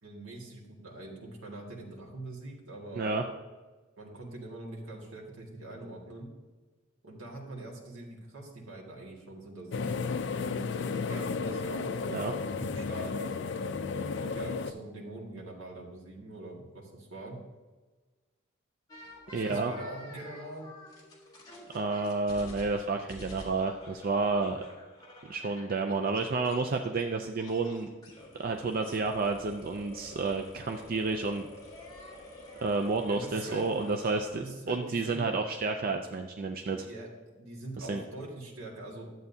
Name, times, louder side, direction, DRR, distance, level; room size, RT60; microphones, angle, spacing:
voice 1, 0.0-3.1 4.0-6.3 7.0-10.0 10.5-13.2 14.1-17.4 19.3-20.7 33.1-33.7 34.3-35.3 36.8-39.1, right 2 dB, 80° right, -2 dB, 1.9 m, -43 dB
voice 2, 2.9-3.2 12.1-12.3 19.3-19.7 21.7-24.6 25.3-27.9 28.3-31.5 32.6-36.9 37.8-38.0, right 3 dB, 45° right, 4 dB, 0.4 m, -30 dB
sound 1, 9.7-14.7, left 4 dB, 55° left, 0.4 m, -33 dB
sound 2, 18.9-27.0 27.3-34.4, left 1 dB, 20° left, 1.4 m, -49 dB
11.0 x 7.8 x 2.7 m, 1.3 s
head